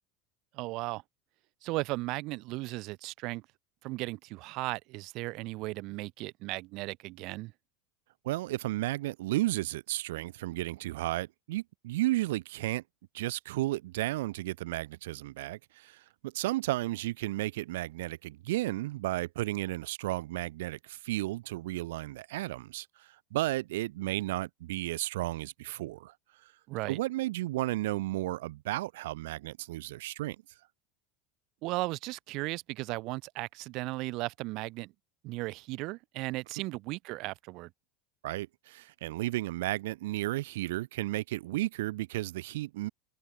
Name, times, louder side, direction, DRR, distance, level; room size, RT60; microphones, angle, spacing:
voice 1, 0.5-1.0 1.6-3.4 3.8-7.5 26.7-27.0 31.6-34.9 35.2-37.7, right 22 dB, 55° right, 0.7 m, -36 dB
voice 2, 8.2-12.8 13.1-26.1 26.4-26.5 26.9-30.4 38.2-42.9, right 17 dB, 85° right, 1.3 m, -33 dB
supercardioid pair, 140°, 0 cm